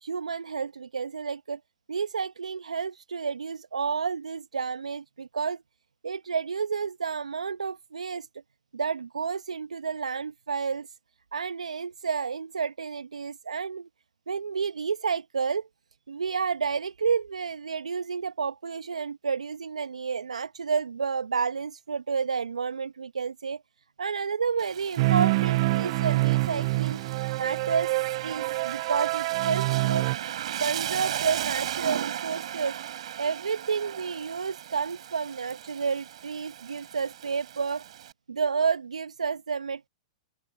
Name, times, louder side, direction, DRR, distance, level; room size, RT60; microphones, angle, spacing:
voice 1, 0.0-1.6 1.9-5.6 6.0-8.3 8.7-10.9 11.3-13.9 14.3-15.7 16.1-23.6 24.0-27.0 27.4-27.9 28.2-30.1 30.6-32.8 33.2-37.8 38.3-39.9, right 6 dB, 80° right, 1.0 m, -30 dB
Rain, 24.6-38.1, right 11 dB, 65° right, 7.0 m, -37 dB
sound 1, 25.0-30.2, right 22 dB, 50° right, 0.4 m, -26 dB
figure-of-eight pair, 105°, 4 cm